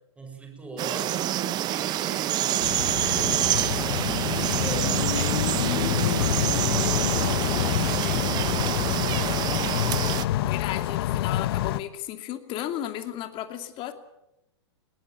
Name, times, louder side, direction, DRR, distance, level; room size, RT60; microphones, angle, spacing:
voice 1, 0.2-3.7 4.2-8.6, right 2 dB, 10° right, 4 dB, 6.2 m, -40 dB
sound 1, 0.8-10.3, right 14 dB, 30° right, 0.8 m, -27 dB
sound 2, 2.6-11.8, left 13 dB, 55° left, 1.1 m, -27 dB
voice 2, 10.4-13.9, left 12 dB, 35° left, 8 dB, 2.6 m, -34 dB
21.0 x 18.0 x 9.0 m, 0.87 s
hypercardioid pair, 125°, 15 cm